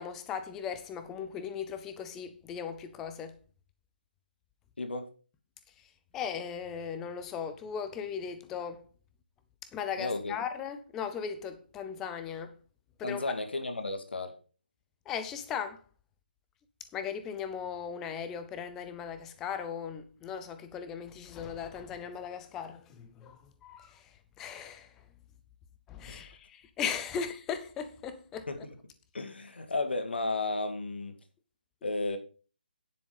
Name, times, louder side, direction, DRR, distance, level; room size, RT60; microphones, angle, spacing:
voice 1, 0.0-3.4 6.1-8.9 9.7-12.6 13.0-13.3 15.1-15.8 16.9-24.9 25.9-28.5, left 7 dB, 5° left, 0.4 m, -38 dB
voice 2, 4.8-5.1 10.0-10.3 13.0-14.4 26.1-26.3 28.5-28.7 29.1-31.1 31.8-32.2, left 2 dB, 85° left, 2.3 m, -33 dB
9.8 x 7.2 x 5.3 m
hypercardioid pair, 175°, 6 cm